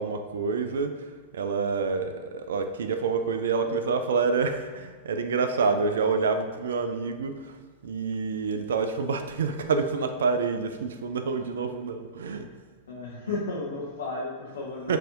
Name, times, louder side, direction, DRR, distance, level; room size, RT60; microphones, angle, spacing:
voice 1, 0.0-12.5 14.9-15.0, right 4 dB, 65° right, 7 dB, 0.3 m, -28 dB
voice 2, 12.9-15.0, left 3 dB, 65° left, -5 dB, 0.7 m, -33 dB
7.3 x 2.7 x 2.5 m, 1.5 s
figure-of-eight pair, 90°, 0 cm